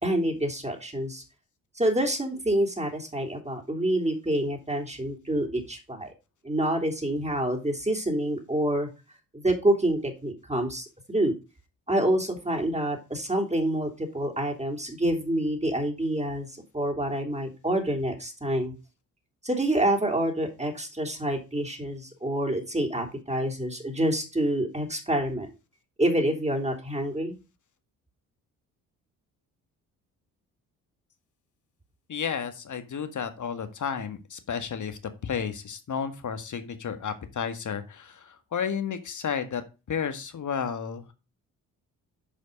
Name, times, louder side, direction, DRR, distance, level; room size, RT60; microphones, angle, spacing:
voice 1, 0.0-1.2 1.7-6.1 6.4-8.9 9.3-11.3 11.9-18.7 19.4-25.5 26.0-27.3, right 1 dB, 15° right, 1 dB, 3.1 m, -27 dB
voice 2, 32.1-39.6 39.9-41.1, left 7 dB, 45° left, 9 dB, 1.7 m, -32 dB
8.8 x 5.2 x 5.2 m, 0.30 s
hypercardioid pair, 45°, 44 cm